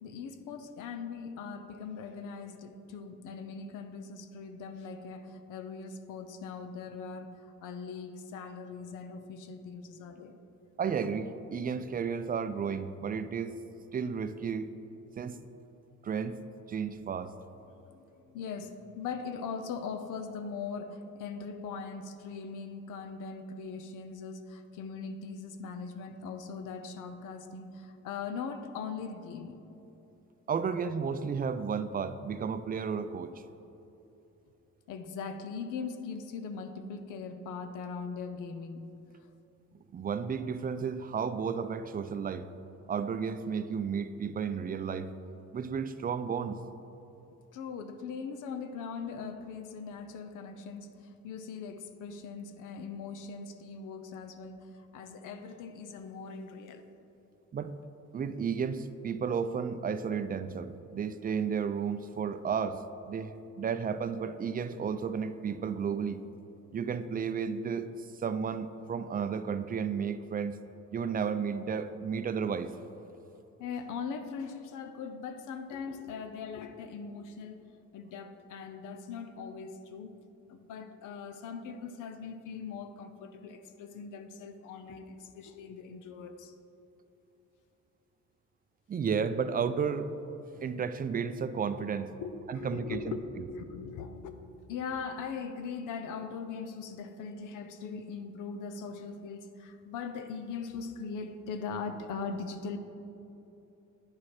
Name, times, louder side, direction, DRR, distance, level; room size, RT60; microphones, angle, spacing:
voice 1, 0.0-7.3 7.6-10.4 17.7-29.6 34.9-38.9 47.5-50.9 51.2-56.8 73.6-77.7 77.9-80.1 80.5-86.5 92.2-102.8, left 5 dB, 85° left, 8 dB, 0.6 m, -40 dB
voice 2, 10.8-13.6 13.9-14.7 15.2-15.4 16.0-16.4 16.7-17.4 30.5-33.4 39.9-42.5 42.9-45.1 45.5-46.6 57.5-57.7 58.1-66.2 66.7-70.6 70.9-72.8 88.9-90.1 90.5-92.1 92.5-93.2, right 6 dB, 30° right, 11 dB, 0.4 m, -33 dB
9.5 x 4.8 x 4.3 m, 3.0 s
cardioid pair, 90°, 30 cm